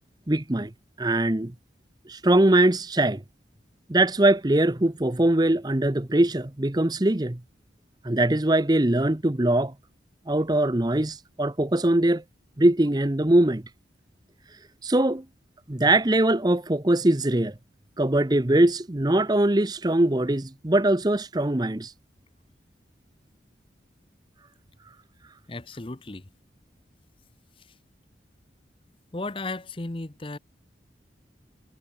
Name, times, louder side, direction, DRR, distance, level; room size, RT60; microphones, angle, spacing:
voice 1, 0.3-0.7 1.0-1.5 2.1-3.2 3.9-7.4 8.0-9.7 10.3-12.2 12.6-13.6 14.8-15.2 15.7-17.5 18.0-21.9, right 1 dB, 20° right, 0.8 m, -22 dB
voice 2, 25.5-26.3 27.6-27.7 29.1-30.4, left 2 dB, 30° left, 0.9 m, -35 dB
head